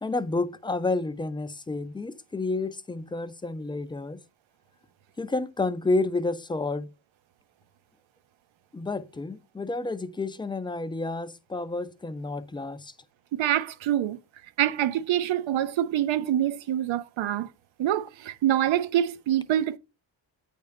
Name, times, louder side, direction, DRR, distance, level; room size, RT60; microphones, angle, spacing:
voice 1, 0.0-4.2 5.2-6.9 8.7-12.9, left 3 dB, 10° left, 0.4 m, -30 dB
voice 2, 13.3-14.2 14.6-17.5 17.8-19.8, right 11 dB, 75° right, 0.8 m, -25 dB
9.2 x 3.5 x 6.4 m
wide cardioid pair, 180°, 47 cm